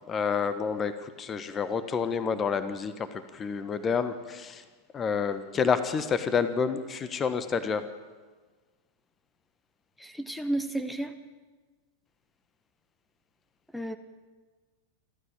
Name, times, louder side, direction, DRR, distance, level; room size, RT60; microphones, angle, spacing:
voice 1, 0.1-4.6 4.9-7.9, left 6 dB, 25° left, 12 dB, 1.3 m, -29 dB
voice 2, 10.0-11.1 13.7-14.0, right 1 dB, ahead, 10 dB, 1.3 m, -32 dB
28.0 x 13.0 x 9.0 m, 1.4 s
figure-of-eight pair, 90°, 0 cm